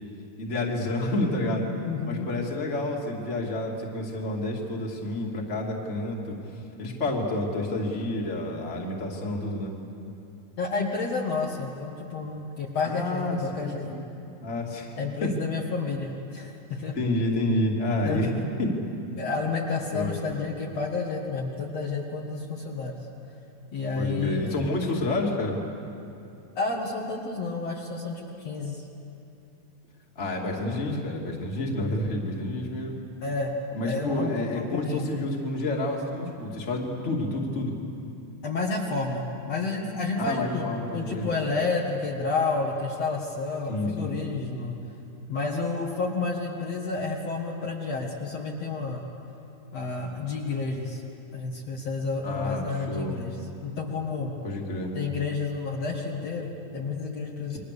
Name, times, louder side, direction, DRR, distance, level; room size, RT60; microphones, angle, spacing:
voice 1, 0.4-1.6 2.0-6.4 6.8-9.7 12.8-14.0 14.4-14.9 15.2-15.3 17.0-18.3 18.6-18.7 19.9-20.5 23.9-25.6 30.2-33.0 33.7-37.7 40.2-41.3 43.7-44.1 52.2-53.1 54.4-54.9, left 1 dB, 20° left, -1 dB, 2.6 m, -29 dB
voice 2, 1.8-2.3 10.6-13.9 15.0-17.0 18.0-18.3 19.2-23.0 23.7-24.4 26.6-28.8 33.2-33.5 33.8-35.1 38.4-44.8 45.3-49.0 49.7-51.0 51.3-53.4 53.6-54.4 54.9-57.6, left 4 dB, 55° left, -2 dB, 2.7 m, -30 dB
29.5 x 23.0 x 6.8 m, 2.8 s
omnidirectional pair, 3.8 m